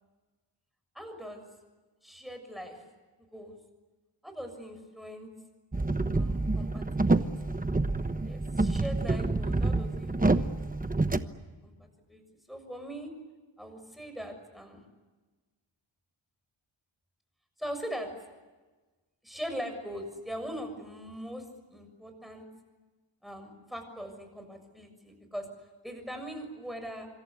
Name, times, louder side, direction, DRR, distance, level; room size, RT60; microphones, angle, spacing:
voice 1, 1.0-1.5 2.0-2.8 3.3-3.6 4.2-5.3 6.1-7.6 8.2-10.6 11.2-13.1 13.6-14.8 17.6-18.1 19.2-22.5 23.2-25.5 25.8-27.1, equal, ahead, 6 dB, 6.8 m, -41 dB
sound 1, 5.7-11.2, right 2 dB, 15° right, 1.1 m, -27 dB
26.5 x 26.5 x 8.3 m, 1.3 s
wide cardioid pair, 130°, 49 cm